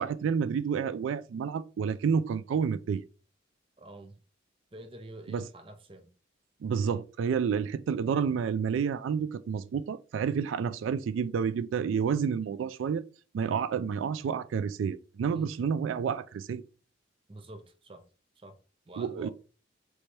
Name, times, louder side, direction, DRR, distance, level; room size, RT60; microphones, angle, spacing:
voice 1, 0.0-3.0 5.3-5.4 6.6-13.0 13.3-16.6 19.0-19.3, right 6 dB, 90° right, 0.3 m, -29 dB
voice 2, 3.8-4.2 4.7-6.1 15.3-15.5 17.3-18.1 18.4-18.6 18.9-19.3, right 1 dB, 25° right, 0.6 m, -47 dB
3.3 x 3.2 x 4.3 m
head